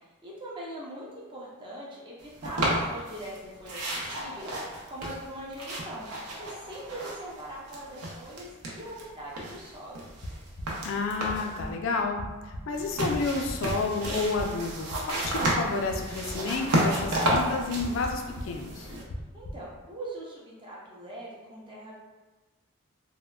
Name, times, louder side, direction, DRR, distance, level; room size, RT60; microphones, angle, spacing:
voice 1, 0.2-6.1 6.4-10.0 19.3-21.9, right 1 dB, 20° right, -5 dB, 0.4 m, -41 dB
sound 1, 2.4-3.4 3.6-7.4 7.7-9.0 9.4-11.6 12.7-19.0, right 1 dB, 85° right, 0.6 m, -31 dB
sound 2, 10.0-19.9, equal, 90° left, 0.7 m, -42 dB
voice 2, 10.8-12.2 12.7-18.9, left 3 dB, 60° left, 3 dB, 0.3 m, -30 dB
3.4 x 2.1 x 2.2 m, 1.2 s
head